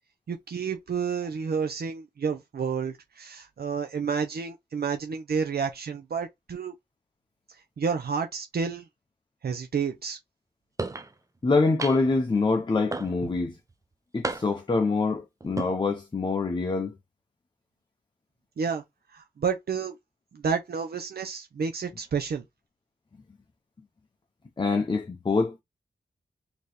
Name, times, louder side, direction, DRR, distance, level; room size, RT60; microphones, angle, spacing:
voice 1, 0.3-6.7 7.8-8.8 9.4-10.2 18.6-18.8 19.1-19.9 20.3-22.4, right 6 dB, 60° right, 0.6 m, -30 dB
sound 1, 10.8-11.1 11.8-12.2 12.9-13.4 14.2-14.7 15.4-15.7, right 2 dB, 20° right, 0.5 m, -32 dB
voice 2, 11.4-13.6 14.1-16.9 24.6-25.6, left 3 dB, 25° left, 0.6 m, -25 dB
4.3 x 2.9 x 3.2 m
wide cardioid pair, 115°, 18 cm